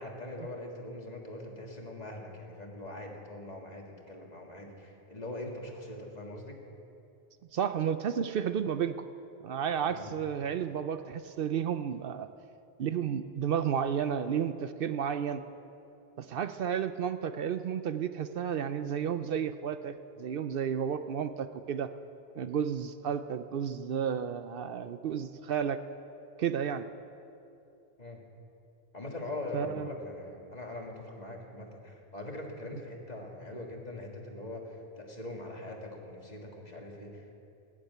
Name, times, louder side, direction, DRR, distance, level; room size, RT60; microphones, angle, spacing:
voice 1, 0.0-6.6 9.9-10.1 28.0-28.2 28.9-37.3, left 1 dB, 40° left, 0 dB, 1.9 m, -42 dB
voice 2, 7.5-9.1 9.4-12.3 12.8-15.4 16.2-21.9 22.4-25.8 26.4-26.9 29.5-29.9, right 8 dB, 65° right, 10 dB, 0.8 m, -32 dB
18.0 x 7.4 x 9.3 m, 2.7 s
omnidirectional pair, 1.0 m